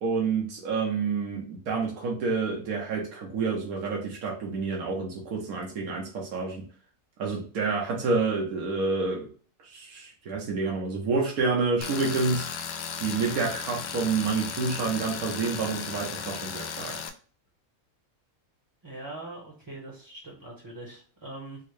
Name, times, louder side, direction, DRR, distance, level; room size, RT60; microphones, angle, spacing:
voice 1, 0.0-6.6 7.2-9.3 9.6-12.5 13.0-16.9, right 4 dB, 85° right, -1 dB, 1.3 m, -28 dB
Tools, 11.8-17.1, left 6 dB, 80° left, 1.0 m, -35 dB
voice 2, 18.8-21.6, right 2 dB, 25° right, -2 dB, 0.7 m, -42 dB
4.5 x 2.0 x 3.1 m, 0.41 s
omnidirectional pair, 1.5 m